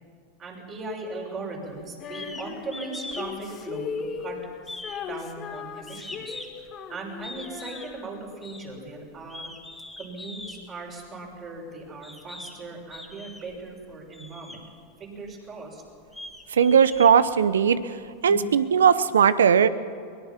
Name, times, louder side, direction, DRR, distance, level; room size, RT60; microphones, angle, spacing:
voice 1, 0.4-3.9 4.2-4.4 5.1-6.2 6.9-9.5 10.0-14.6 15.0-15.8 18.3-18.6, right 3 dB, 35° right, -1 dB, 6.6 m, -38 dB
Female singing, 2.0-8.5, left 6 dB, 35° left, 1.9 m, -38 dB
sound 1, 2.1-2.5 2.7-3.3 3.6-4.2 4.6-6.7 7.2-7.9 8.4-8.7 9.2-10.6 11.4-11.5 12.0-12.6 12.9-13.6 14.1-14.6 15.2-15.3 15.9-17.7, left 2 dB, 5° left, 2.7 m, -41 dB
voice 2, 16.5-17.8 18.2-19.7, right 7 dB, 90° right, 15 dB, 0.8 m, -18 dB
23.5 x 19.0 x 5.9 m, 2.3 s
hypercardioid pair, 110°, 0 cm